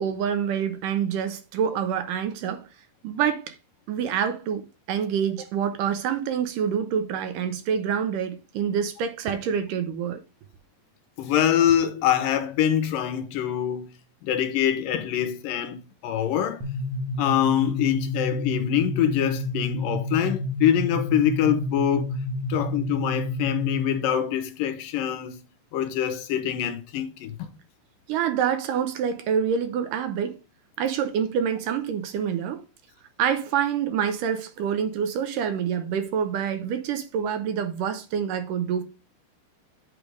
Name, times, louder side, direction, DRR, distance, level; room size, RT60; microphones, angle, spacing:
voice 1, 0.0-2.7 3.0-3.6 3.9-10.2 22.5-22.6 28.1-30.4 30.8-32.6 33.2-38.8, right 8 dB, 75° right, 2.2 m, -26 dB
voice 2, 11.2-13.9 14.2-16.6 17.2-22.1 22.5-25.4 25.7-27.5, left 10 dB, 75° left, 2.5 m, -24 dB
sound 1, 16.6-24.2, left 2 dB, 50° right, 2.2 m, -29 dB
8.5 x 3.4 x 6.2 m
omnidirectional pair, 4.1 m